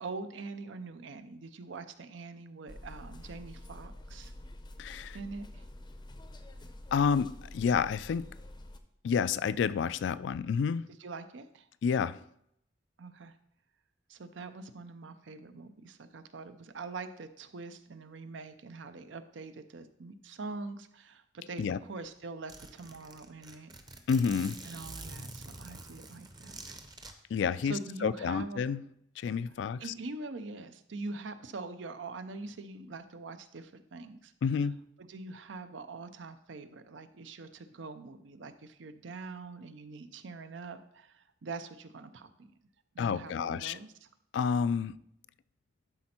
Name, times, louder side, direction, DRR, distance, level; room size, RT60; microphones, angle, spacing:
voice 1, 0.0-4.3 5.1-5.7 11.0-11.7 13.0-13.4 14.1-23.7 24.6-26.8 27.6-28.6 29.8-34.3 35.0-42.5 42.9-44.1, right 3 dB, 75° right, 0.6 m, -44 dB
sound 1, 2.7-8.8, left 1 dB, 25° left, 0.6 m, -48 dB
voice 2, 4.8-5.2 6.9-8.3 9.0-10.9 11.8-12.2 21.6-21.8 24.1-24.6 27.3-28.8 29.2-29.8 34.4-34.8 43.0-43.8 44.3-44.9, left 6 dB, 65° left, 0.3 m, -29 dB
Zipper (clothing), 21.7-21.8 22.0-22.1 22.5-27.1, right 2 dB, 20° right, 0.7 m, -46 dB
11.5 x 4.3 x 4.3 m
head